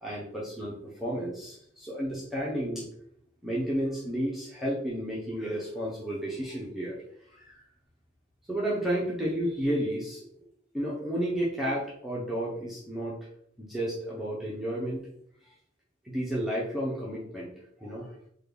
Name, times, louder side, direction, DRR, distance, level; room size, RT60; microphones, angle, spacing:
voice 1, 0.0-2.8 3.4-7.0 7.3-7.6 8.5-10.2 10.7-13.2 13.6-15.1 16.0-17.5 17.8-18.1, right 1 dB, ahead, -6 dB, 0.5 m, -32 dB
3.6 x 2.3 x 3.3 m, 0.70 s
head